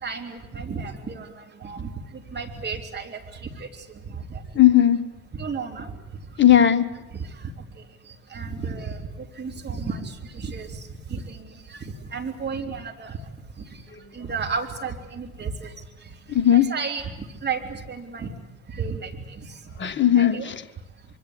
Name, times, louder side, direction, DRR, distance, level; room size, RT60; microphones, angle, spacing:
voice 1, 0.0-3.7 4.1-4.4 5.3-5.9 7.1-13.2 13.6-13.8 14.1-15.7 16.5-18.3 18.7-19.6 20.3-20.5, right 5 dB, 25° right, 3 dB, 3.6 m, -33 dB
voice 2, 4.5-5.0 6.4-6.9 13.9-14.0 16.3-16.7 19.8-20.6, left 11 dB, 25° left, 10 dB, 1.5 m, -17 dB
25.0 x 24.0 x 8.4 m, 1.0 s
figure-of-eight pair, 65°, 42 cm